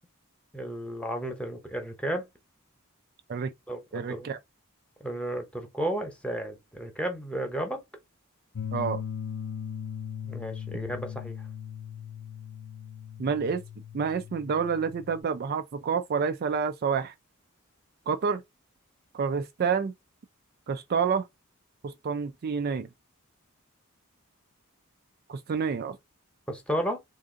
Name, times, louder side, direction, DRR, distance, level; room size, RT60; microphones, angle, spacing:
voice 1, 0.5-2.3 3.7-4.3 5.0-7.8 10.2-11.4 26.5-27.0, right 1 dB, 5° left, 0.9 m, -33 dB
voice 2, 3.9-4.4 8.7-9.0 13.2-13.6 13.9-17.1 18.1-18.4 19.1-19.9 20.7-21.3 21.8-22.9 25.3-26.0, right 6 dB, 45° right, 0.4 m, -28 dB
sound 1, 8.6-15.2, left 8 dB, 90° left, 0.6 m, -38 dB
3.6 x 2.5 x 3.7 m
head